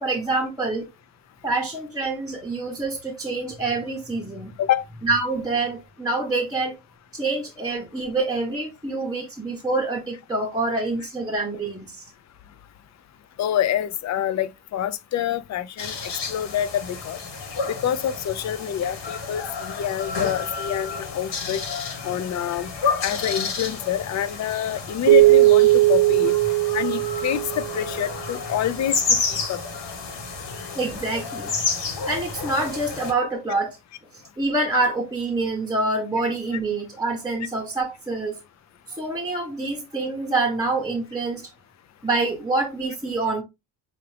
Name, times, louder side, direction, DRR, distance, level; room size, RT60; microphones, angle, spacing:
voice 1, 0.0-0.9 1.4-4.5 5.0-6.8 7.1-12.0 30.7-31.5 32.1-33.8 34.4-38.4 38.9-41.4 42.0-43.4, right 2 dB, 10° right, 0.9 m, -26 dB
voice 2, 13.4-15.9 16.3-17.2 17.8-21.6 22.0-22.7 23.0-26.3 26.7-29.2 29.5-29.6, left 10 dB, 45° left, 0.5 m, -26 dB
sound 1, 15.8-33.1, left 4 dB, 80° left, 1.3 m, -30 dB
Keyboard (musical), 25.1-28.0, right 17 dB, 55° right, 0.8 m, -17 dB
5.8 x 2.5 x 3.3 m
cardioid pair, 105°, 41 cm